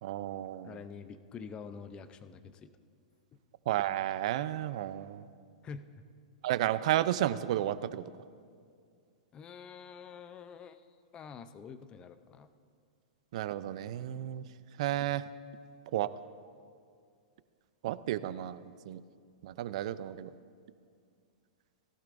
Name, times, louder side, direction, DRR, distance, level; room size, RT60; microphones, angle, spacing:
voice 1, 0.0-0.8 3.7-5.2 6.4-8.0 13.3-14.4 14.8-15.2 15.9-16.1 17.8-19.0 19.4-20.3, right 13 dB, 60° right, 15 dB, 0.5 m, -32 dB
voice 2, 0.6-2.7 5.6-5.9 9.3-10.8 11.1-12.5, left 6 dB, 25° left, 12 dB, 0.6 m, -46 dB
18.5 x 12.0 x 2.6 m, 2.2 s
hypercardioid pair, 135°, 4 cm